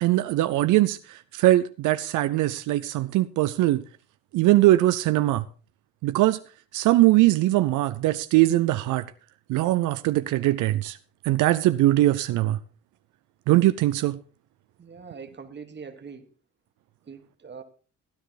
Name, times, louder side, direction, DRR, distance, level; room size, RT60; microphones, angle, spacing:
voice 1, 0.0-3.8 4.3-5.4 6.0-6.4 6.7-9.0 9.5-11.0 11.2-12.6 13.5-14.2, right 16 dB, 90° right, 0.5 m, -21 dB
voice 2, 14.8-16.3 17.1-17.6, right 5 dB, 35° right, 1.6 m, -42 dB
13.0 x 10.5 x 4.0 m
cardioid pair, 90°, 30 cm